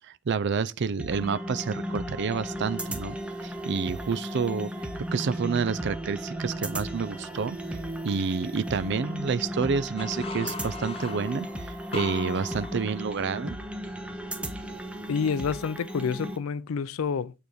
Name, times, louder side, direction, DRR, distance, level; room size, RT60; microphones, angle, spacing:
voice 1, 0.0-3.2 3.4-7.8 8.0-13.6, right 5 dB, 55° right, 0.5 m, -29 dB
sound 1, 1.0-16.4, equal, 5° right, 1.2 m, -35 dB
sound 2, 10.0-13.6, left 5 dB, 30° left, 0.7 m, -40 dB
voice 2, 15.1-17.3, left 6 dB, 80° left, 0.4 m, -28 dB
9.2 x 4.7 x 5.0 m
head